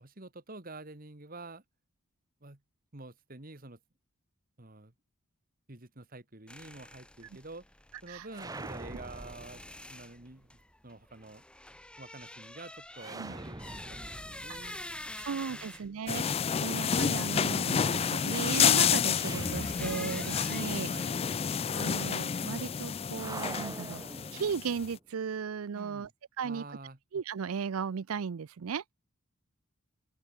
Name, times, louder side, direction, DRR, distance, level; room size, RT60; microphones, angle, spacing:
voice 1, 0.0-1.6 2.4-2.6 2.9-3.8 4.6-4.9 5.7-7.6 8.0-11.4 12.0-15.8 20.9-21.4 25.7-26.1 26.4-27.0, right 2 dB, 40° right, 1.9 m, -48 dB
sound 1, 6.5-15.8 19.2-20.6, left 1 dB, 5° left, 1.5 m, -47 dB
sound 2, 8.3-10.3 12.9-15.9 19.1-20.5 20.8-20.9 23.1-24.9, right 2 dB, 15° right, 1.0 m, -44 dB
voice 2, 15.2-16.2 16.6-20.9 21.7-24.0 24.3-26.1 26.4-26.6 27.1-28.8, right 6 dB, 80° right, 0.5 m, -36 dB
sound 3, 16.1-24.9, left 7 dB, 30° left, 0.3 m, -29 dB
open air
head